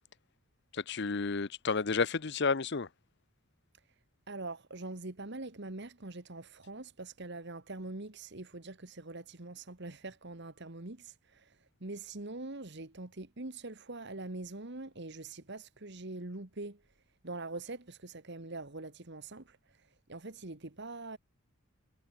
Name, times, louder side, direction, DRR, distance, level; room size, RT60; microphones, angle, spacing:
voice 1, 0.7-2.9, left 4 dB, 55° left, 0.8 m, -31 dB
voice 2, 4.3-21.2, right 2 dB, 55° right, 1.8 m, -44 dB
head